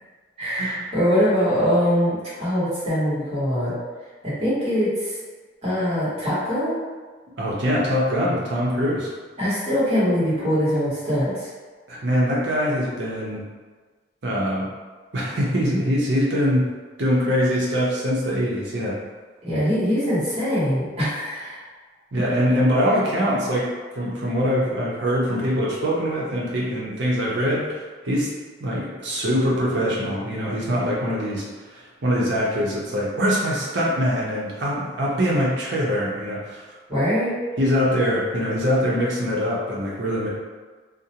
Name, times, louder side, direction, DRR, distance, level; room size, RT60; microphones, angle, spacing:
voice 1, 0.4-3.7 4.2-5.1 5.6-6.8 9.4-11.5 19.4-21.6 36.9-37.3, equal, 35° right, -11 dB, 1.3 m, -22 dB
voice 2, 7.4-9.1 11.9-13.4 14.2-14.7 15.1-16.7 17.0-19.0 22.1-23.7 23.9-27.7 28.0-28.3 28.6-36.6 37.6-40.3, equal, 80° right, -5 dB, 0.7 m, -23 dB
2.5 x 2.1 x 2.8 m, 1.4 s
head